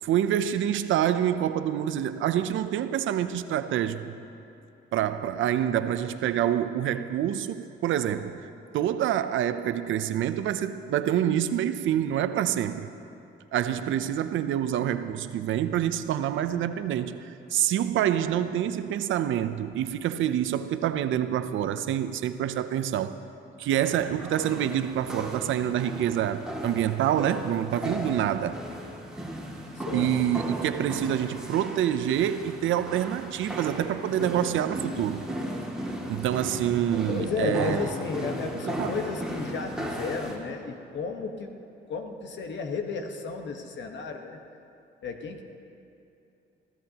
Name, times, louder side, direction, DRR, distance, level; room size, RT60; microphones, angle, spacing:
voice 1, 0.0-4.2 4.9-12.9 13.5-23.2 23.6-28.6 29.9-35.2 36.1-37.8 38.6-38.9, right 10 dB, 75° right, 0.6 m, -27 dB
sound 1, 23.7-40.4, right 1 dB, 5° right, 2.4 m, -36 dB
voice 2, 29.7-30.1 37.1-41.5 41.9-44.4 45.0-45.4, left 4 dB, 65° left, 1.4 m, -33 dB
23.0 x 15.0 x 3.0 m
cardioid pair, 90°, 20 cm